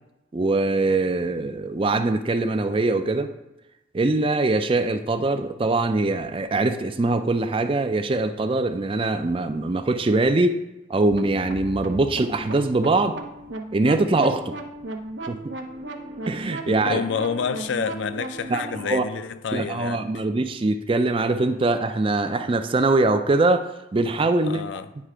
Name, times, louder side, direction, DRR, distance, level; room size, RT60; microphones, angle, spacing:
voice 1, 0.3-3.3 3.9-10.6 10.9-13.2 13.7-14.5 15.3-15.4 16.3-17.0 18.5-19.0 19.5-24.6, right 2 dB, 25° right, 0.4 m, -22 dB
sound 1, 11.1-18.9, right 2 dB, 65° right, 0.7 m, -36 dB
voice 2, 16.7-20.0 24.4-24.9, left 6 dB, 70° left, 0.4 m, -28 dB
9.5 x 3.3 x 4.9 m
head